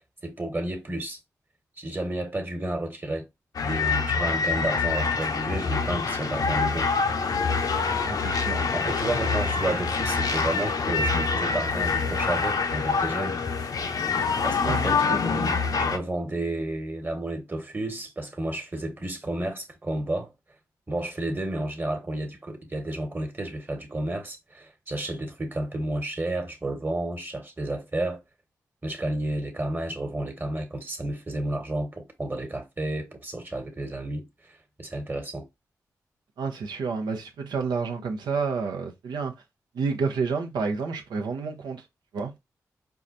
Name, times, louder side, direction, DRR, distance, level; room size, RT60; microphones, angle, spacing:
voice 1, 0.2-1.2 1.8-3.3 3.6-6.9 8.7-13.4 14.4-20.3 20.9-28.2 28.8-35.5, right 1 dB, 30° right, 1.3 m, -31 dB
sound 1, 3.5-16.0, left 4 dB, 65° left, 0.6 m, -26 dB
voice 2, 8.0-8.6 14.6-14.8 15.1-15.2 36.4-39.3 39.7-41.8 42.1-42.3, right 5 dB, 80° right, 0.8 m, -29 dB
4.6 x 2.3 x 2.6 m
supercardioid pair, 45°, 7 cm